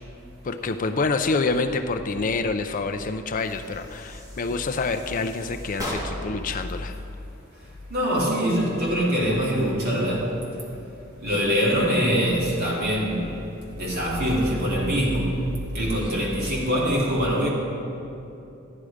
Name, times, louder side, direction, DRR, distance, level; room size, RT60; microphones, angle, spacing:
voice 1, 0.4-7.0, left 3 dB, 40° left, 7 dB, 0.5 m, -27 dB
sound 1, 3.3-6.5, equal, 15° right, 2.6 m, -37 dB
voice 2, 7.9-10.3 11.2-15.4 15.7-17.5, equal, 50° right, -5 dB, 3.0 m, -23 dB
14.0 x 11.0 x 5.0 m, 2.8 s
head